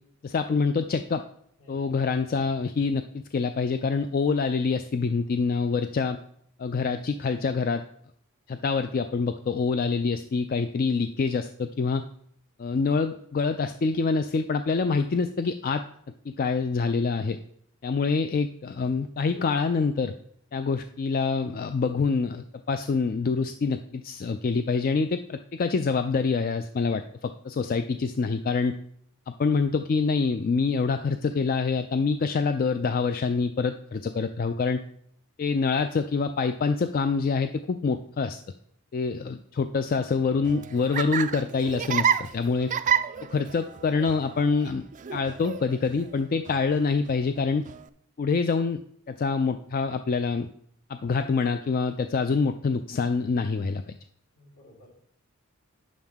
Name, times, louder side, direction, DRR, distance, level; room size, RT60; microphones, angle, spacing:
voice 1, 0.2-1.2 1.7-6.2 6.6-7.8 8.5-12.0 12.6-15.8 16.3-17.4 17.8-20.1 20.5-28.8 29.3-34.8 35.4-38.4 38.9-42.7 43.3-44.8 45.1-47.6 48.2-48.8 49.1-50.5 50.9-53.8, left 4 dB, 40° left, 8 dB, 0.3 m, -26 dB
voice 2, 1.6-1.9 54.4-55.0, equal, 75° left, -2 dB, 2.9 m, -54 dB
Laughter, 40.3-47.9, right 8 dB, 35° right, 0.3 m, -31 dB
9.5 x 7.3 x 3.5 m, 0.67 s
head